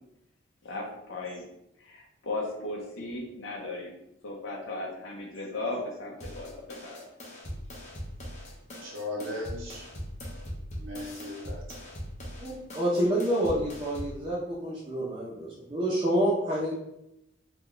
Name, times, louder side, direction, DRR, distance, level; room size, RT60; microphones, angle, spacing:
voice 1, 0.6-1.4 1.8-4.0 4.2-7.0, left 2 dB, 75° left, -2 dB, 0.8 m, -36 dB
sound 1, 6.2-14.2, equal, 35° left, 0.9 m, -41 dB
voice 2, 8.8-9.9 10.8-11.8, left 1 dB, 80° right, -1 dB, 0.9 m, -37 dB
voice 3, 12.4-16.7, right 1 dB, 25° right, -6 dB, 0.6 m, -28 dB
4.0 x 2.3 x 3.2 m, 0.82 s
head